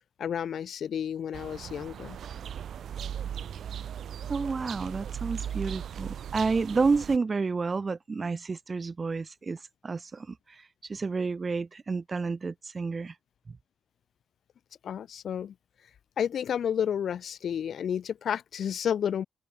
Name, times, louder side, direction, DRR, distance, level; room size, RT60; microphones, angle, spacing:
voice 1, 0.2-2.2 14.8-15.5 16.2-19.2, left 8 dB, 65° left, 0.5 m, -31 dB
sound 1, 1.3-7.2, right 9 dB, 65° right, 1.7 m, -38 dB
voice 2, 4.3-13.2, right 4 dB, 30° right, 0.6 m, -30 dB
cardioid pair, 95°, 0 cm